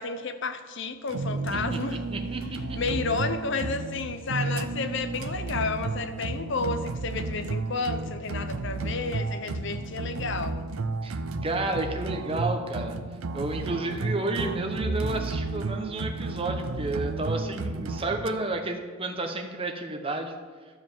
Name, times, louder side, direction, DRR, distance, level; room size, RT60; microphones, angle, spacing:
voice 1, 0.0-2.0 2.8-10.7, left 4 dB, 60° left, 10 dB, 0.7 m, -31 dB
sound 1, 1.1-18.3, right 3 dB, 85° right, 0.6 m, -32 dB
voice 2, 1.7-2.8 11.0-13.0 13.3-20.3, right 2 dB, 25° right, 4 dB, 0.9 m, -31 dB
11.5 x 5.0 x 7.2 m, 1.5 s
head